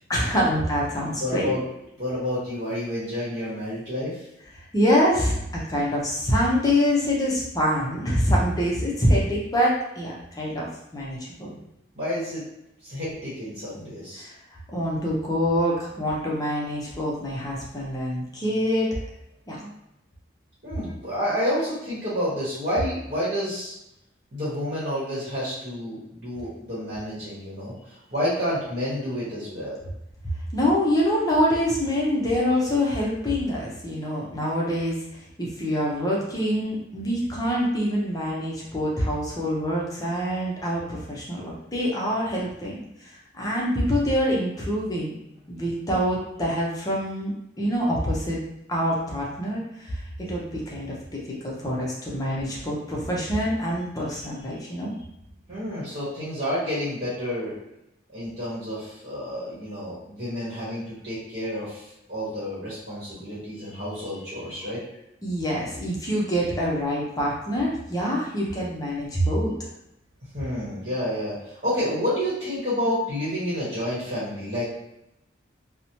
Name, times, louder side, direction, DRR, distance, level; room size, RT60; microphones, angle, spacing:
voice 1, 0.1-1.5 4.7-10.7 10.9-11.6 14.2-14.3 14.7-18.9 19.5-19.7 30.5-34.9 35.4-42.8 43.3-45.1 45.5-47.3 47.6-48.4 48.7-54.9 65.2-69.5, equal, 20° left, -4 dB, 0.5 m, -25 dB
voice 2, 1.2-1.6 2.0-4.3 11.5-11.6 11.9-12.4 12.8-14.3 20.6-23.7 24.3-29.8 55.5-57.5 58.1-64.8 70.3-74.6, equal, 45° right, -9 dB, 1.1 m, -29 dB
2.9 x 2.0 x 2.8 m, 0.84 s
head